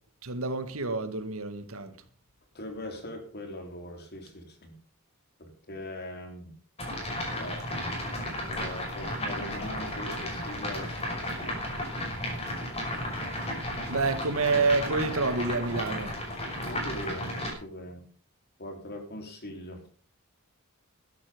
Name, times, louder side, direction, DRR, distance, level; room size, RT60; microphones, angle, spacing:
voice 1, 0.2-1.9 13.9-16.2, right 3 dB, 75° right, 1.9 m, -28 dB
voice 2, 2.5-4.8 5.4-6.6 7.4-7.7 8.4-11.6 16.6-18.1 18.6-19.8, left 1 dB, 50° left, 3.7 m, -41 dB
sound 1, 6.8-17.5, left 1 dB, 30° left, 5.7 m, -34 dB
13.5 x 11.5 x 5.2 m
head